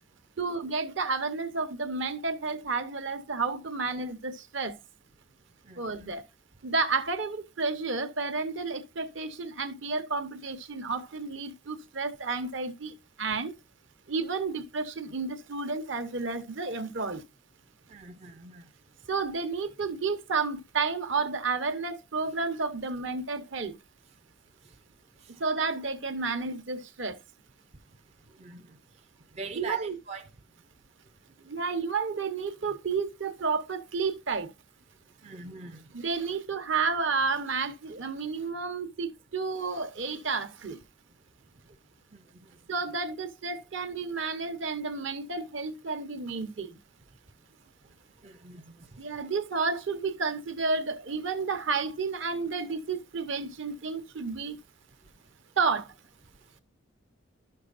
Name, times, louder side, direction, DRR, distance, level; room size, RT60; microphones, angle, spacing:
voice 1, 0.4-4.8 5.8-6.2 6.6-13.5 14.1-17.2 19.1-23.7 25.4-27.2 29.5-30.0 31.5-34.5 35.9-40.8 42.7-46.8 49.0-54.6 55.6-55.9, right 4 dB, 65° right, 1.0 m, -31 dB
voice 2, 5.7-6.0 17.9-18.6 28.4-28.7 29.3-30.3 35.2-35.8 42.1-42.2 48.2-48.8, right 4 dB, 30° right, 0.5 m, -42 dB
12.0 x 6.6 x 2.5 m
head